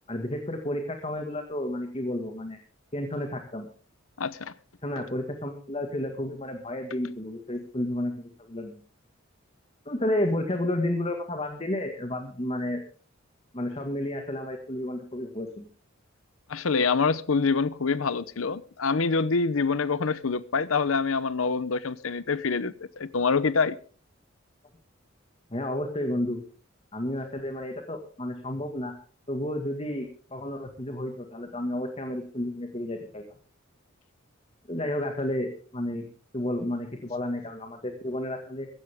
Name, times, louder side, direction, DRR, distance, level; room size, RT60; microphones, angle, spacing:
voice 1, 0.1-2.6 2.9-3.7 4.8-8.7 9.9-12.8 13.5-15.7 25.5-26.4 26.9-28.9 29.3-33.2 34.7-36.1 36.3-38.7, left 1 dB, 30° left, 4 dB, 1.9 m, -31 dB
voice 2, 4.2-4.5 16.5-23.8, left 4 dB, 85° left, 17 dB, 0.8 m, -26 dB
15.5 x 15.5 x 3.6 m, 0.40 s
head